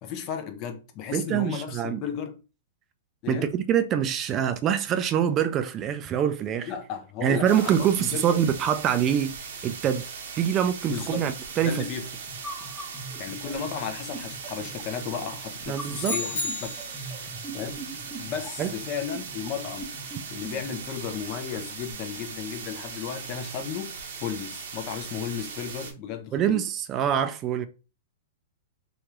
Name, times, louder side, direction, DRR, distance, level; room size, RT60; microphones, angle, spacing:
voice 1, 0.0-2.4 3.2-3.5 6.6-8.3 10.8-11.3 11.6-12.1 13.2-16.7 17.5-17.8 18.2-20.0 20.3-23.9 24.2-26.6, left 7 dB, 40° left, 0.6 m, -34 dB
voice 2, 1.1-2.0 3.3-6.7 7.2-10.0 10.4-11.8 15.7-16.2 18.6-18.7 26.3-27.7, right 9 dB, 30° right, 0.3 m, -25 dB
sound 1, 7.4-25.9, right 5 dB, 75° right, 0.8 m, -39 dB
sound 2, 12.3-20.8, right 1 dB, 5° left, 0.8 m, -42 dB
sound 3, 16.0-17.1, left 2 dB, 65° left, 0.9 m, -31 dB
2.9 x 2.4 x 3.0 m
hypercardioid pair, 130°, 0 cm